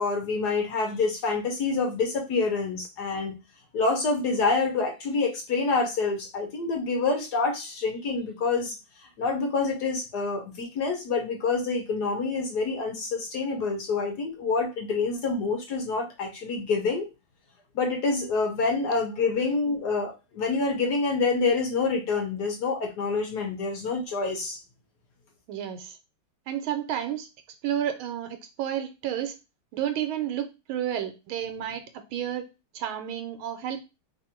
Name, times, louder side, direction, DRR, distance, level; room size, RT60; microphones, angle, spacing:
voice 1, 0.0-3.4 3.7-8.8 9.2-17.1 17.7-24.6, left 4 dB, 60° left, 2 dB, 1.3 m, -27 dB
voice 2, 25.5-26.0 26.5-27.3 27.6-29.3 29.7-31.8 32.1-32.5 32.7-33.8, right 10 dB, 80° right, 8 dB, 1.4 m, -31 dB
3.4 x 2.5 x 4.3 m, 0.26 s
omnidirectional pair, 2.3 m